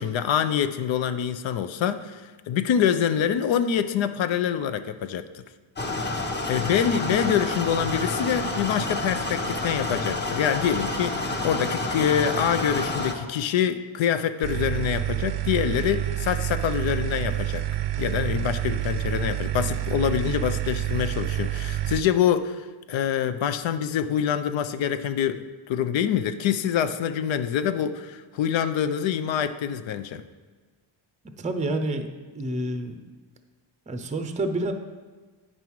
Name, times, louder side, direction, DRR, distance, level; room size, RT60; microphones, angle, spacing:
voice 1, 0.0-5.4 6.5-17.6 18.0-30.2, left 9 dB, 75° left, 10 dB, 0.6 m, -25 dB
sound 1, 5.8-13.1, left 2 dB, 20° left, 0.9 m, -29 dB
sound 2, 14.4-22.0, right 13 dB, 60° right, 0.5 m, -28 dB
voice 2, 31.4-32.1 32.3-33.0 33.9-34.7, right 2 dB, 15° right, 7 dB, 0.5 m, -28 dB
8.9 x 5.5 x 4.6 m, 1.4 s
cardioid pair, 125°, 47 cm